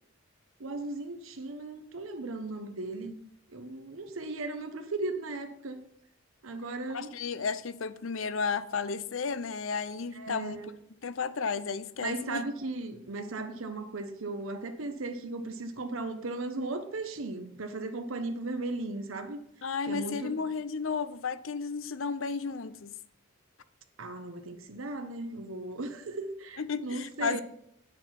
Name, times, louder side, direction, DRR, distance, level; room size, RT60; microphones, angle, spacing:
voice 1, 0.6-3.2 3.5-5.8 6.4-7.2 10.1-10.7 12.0-19.4 19.9-20.4 24.0-27.4, right 2 dB, 75° right, 0.9 m, -36 dB
voice 2, 6.9-10.6 11.0-12.4 19.6-22.9 26.6-27.4, left 5 dB, 70° left, 0.6 m, -33 dB
8.8 x 6.9 x 5.8 m
head